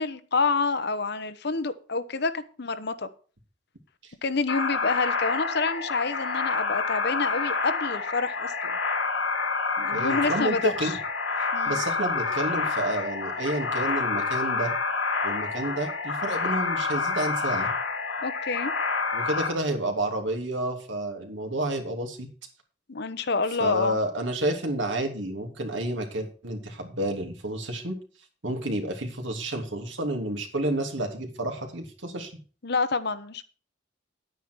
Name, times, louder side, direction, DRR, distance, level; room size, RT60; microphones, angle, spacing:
voice 1, 0.0-3.1 4.2-8.7 9.8-10.9 11.5-11.8 18.2-18.7 22.9-24.0 32.6-33.5, left 4 dB, 60° left, 1.0 m, -28 dB
sound 1, 4.5-19.5, left 4 dB, 75° left, 5.0 m, -28 dB
voice 2, 9.9-10.9 11.7-14.7 15.2-17.7 19.1-22.3 23.6-27.9 28.4-32.3, right 1 dB, 75° right, 2.9 m, -30 dB
10.5 x 9.3 x 4.6 m
head